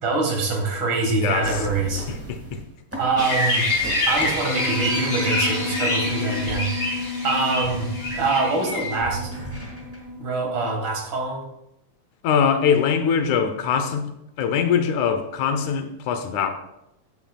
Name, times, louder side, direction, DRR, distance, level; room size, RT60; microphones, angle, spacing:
voice 1, 0.0-2.1 3.0-3.7 4.1-9.3 10.2-11.4, right 3 dB, 45° right, 1 dB, 2.3 m, -25 dB
voice 2, 1.2-1.6 2.1-2.6 12.2-14.1 14.4-16.5, left 7 dB, 80° left, 8 dB, 2.2 m, -22 dB
sound 1, 1.4-2.6 2.9-3.4 3.7-8.6 8.9-10.2, right 2 dB, 5° right, 1.3 m, -35 dB
sound 2, 3.2-8.9, left 2 dB, 60° left, 4.5 m, -26 dB
Piano, 4.5-10.7, left 3 dB, 90° right, 0.7 m, -32 dB
14.5 x 8.2 x 2.3 m, 0.87 s
omnidirectional pair, 3.3 m